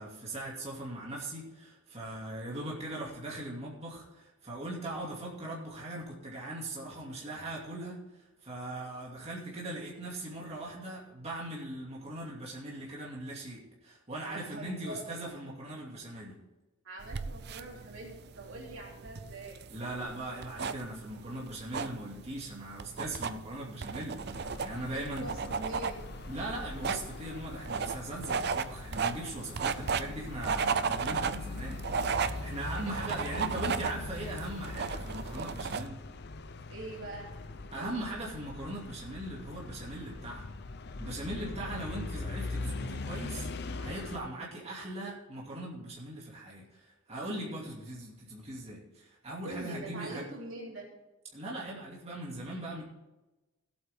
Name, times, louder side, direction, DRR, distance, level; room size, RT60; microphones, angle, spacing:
voice 1, 0.0-16.4 19.7-25.3 26.3-36.0 37.7-40.5 41.0-50.3 51.3-52.8, right 1 dB, 30° right, -4 dB, 2.5 m, -40 dB
voice 2, 14.3-15.0 16.8-19.6 24.9-26.1 32.8-32.9 33.2-33.5 36.7-37.3 37.8-38.0 49.4-50.9, right 1 dB, 80° right, -2 dB, 3.2 m, -44 dB
sound 1, 17.0-35.9, right 5 dB, 55° right, 0.5 m, -35 dB
sound 2, 24.3-44.2, left 3 dB, 55° left, 0.7 m, -41 dB
16.5 x 8.3 x 3.6 m, 1.1 s
head